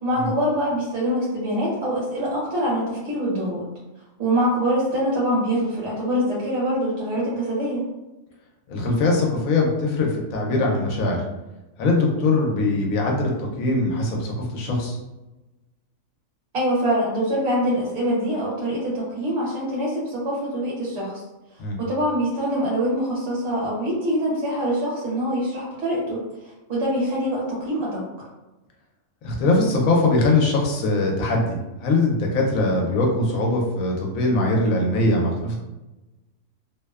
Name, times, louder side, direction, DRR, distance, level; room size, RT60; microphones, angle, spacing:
voice 1, 0.0-3.6 4.2-7.8 16.5-21.2 21.8-26.2 26.7-28.0, equal, 60° right, -6 dB, 1.2 m, -24 dB
voice 2, 8.7-11.2 11.8-15.0 21.6-21.8 29.2-35.5, left 2 dB, 85° left, -1 dB, 1.1 m, -21 dB
2.7 x 2.1 x 2.2 m, 1.0 s
omnidirectional pair, 1.4 m